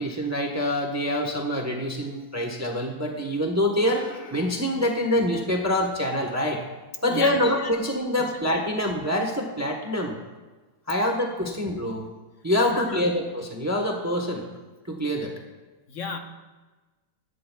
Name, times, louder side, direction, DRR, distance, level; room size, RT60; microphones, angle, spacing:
voice 1, 0.0-6.6 7.0-10.2 10.9-12.1 12.4-14.4 14.9-15.3, left 1 dB, 10° right, 2 dB, 1.0 m, -25 dB
voice 2, 7.1-7.7 11.4-11.6 12.7-13.1 15.9-16.2, left 4 dB, 55° left, 4 dB, 1.3 m, -33 dB
21.5 x 9.5 x 2.3 m, 1.3 s
omnidirectional pair, 1.7 m